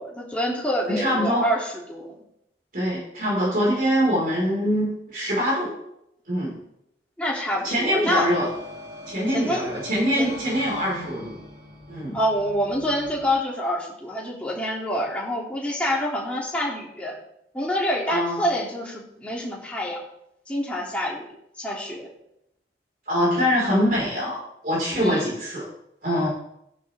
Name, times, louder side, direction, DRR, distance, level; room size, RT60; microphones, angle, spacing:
voice 1, 0.0-2.1 7.2-8.3 9.3-9.8 10.2-10.4 12.1-17.2 17.5-20.0 20.5-21.3 21.6-22.1 25.0-25.3, equal, 5° left, -4 dB, 3.2 m, -27 dB
voice 2, 0.9-1.4 2.7-5.7 6.3-6.5 7.6-8.5 9.1-11.4 11.9-12.1 18.1-18.4 23.1-24.4 24.6-25.7 26.0-26.3, equal, 50° right, -5 dB, 5.3 m, -23 dB
sound 1, 8.1-13.4, left 1 dB, 65° right, 5.3 m, -40 dB
16.0 x 11.5 x 3.7 m, 0.79 s
head